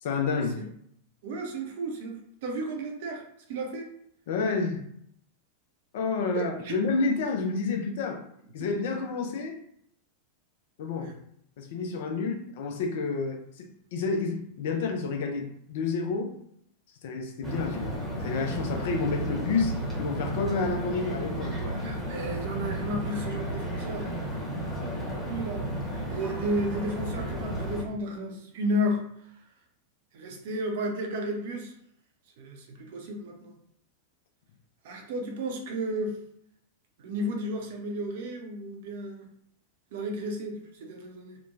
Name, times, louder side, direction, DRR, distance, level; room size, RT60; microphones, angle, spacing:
voice 1, 0.0-0.6 4.3-4.9 5.9-8.2 8.5-9.6 10.8-11.1 11.6-16.3 17.0-21.8 24.6-24.8, left 4 dB, 55° left, 4 dB, 0.4 m, -30 dB
voice 2, 1.2-3.9 6.3-6.7 10.9-11.2 21.6-24.2 24.9-25.7 26.1-29.0 29.3-29.4 30.1-31.7 32.4-33.6 34.8-36.2 37.0-39.3 39.9-41.4, equal, 55° right, 2 dB, 0.5 m, -33 dB
sound 1, 17.4-27.8, right 1 dB, 10° right, 0.9 m, -33 dB
2.9 x 2.1 x 2.4 m, 0.69 s
figure-of-eight pair, 90°, 0 cm